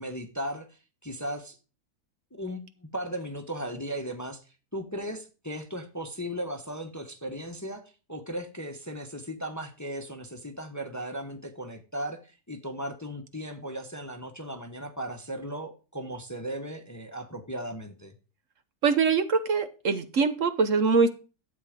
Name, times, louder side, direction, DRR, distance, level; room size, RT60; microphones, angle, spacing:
voice 1, 0.0-1.6 2.3-4.4 4.7-7.8 8.1-18.1, equal, 15° left, 6 dB, 1.1 m, -36 dB
voice 2, 18.8-21.1, right 5 dB, 55° right, 9 dB, 1.3 m, -23 dB
12.0 x 8.2 x 5.1 m, 0.35 s
omnidirectional pair, 1.6 m